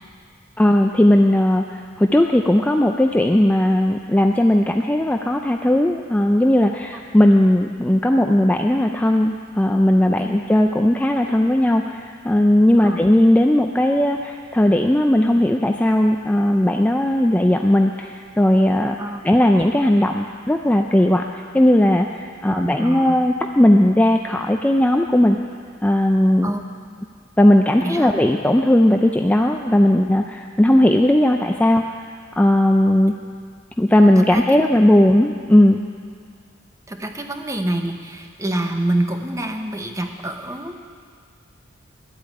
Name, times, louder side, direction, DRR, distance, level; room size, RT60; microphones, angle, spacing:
voice 1, 0.6-19.0 19.2-21.2 21.5-25.4 25.8-26.5 27.4-31.8 32.4-33.1 33.8-35.8, left 1 dB, 10° left, 3 dB, 0.4 m, -17 dB
voice 2, 22.4-23.2 26.4-26.6 27.8-28.1 34.2-34.6 36.9-40.8, right 1 dB, 15° right, 4 dB, 0.9 m, -27 dB
12.0 x 8.4 x 8.7 m, 2.1 s
head